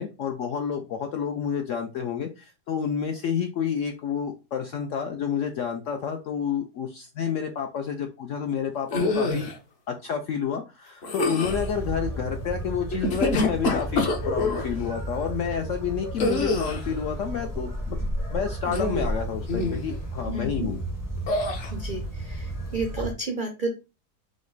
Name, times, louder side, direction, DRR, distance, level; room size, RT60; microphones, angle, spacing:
voice 1, 0.0-9.5 9.9-20.8, left 7 dB, 75° left, 5 dB, 0.7 m, -29 dB
sound 1, 8.9-9.6 11.0-11.7 12.9-14.7 16.2-16.9 18.6-19.2 19.5-19.9 21.3-21.7, left 2 dB, 50° left, 0.9 m, -26 dB
sound 2, 11.4-23.1, right 1 dB, 20° left, 0.6 m, -33 dB
voice 2, 20.3-20.7 21.7-22.5 22.7-23.7, right 2 dB, 75° right, 4 dB, 0.4 m, -31 dB
5.0 x 2.1 x 3.9 m, 0.30 s
omnidirectional pair, 1.8 m